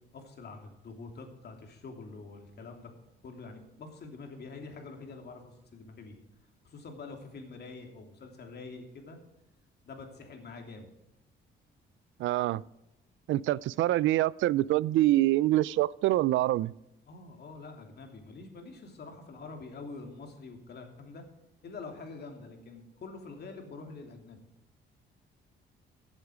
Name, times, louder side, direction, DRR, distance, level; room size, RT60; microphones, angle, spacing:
voice 1, 0.1-2.9 3.2-6.2 6.6-9.2 9.8-10.9 17.1-21.2 21.6-24.4, left 3 dB, 55° left, 3 dB, 2.9 m, -46 dB
voice 2, 12.2-12.6 13.3-16.7, right 15 dB, 75° right, 22 dB, 0.4 m, -25 dB
15.0 x 8.2 x 5.0 m, 0.90 s
cardioid pair, 90°, 20 cm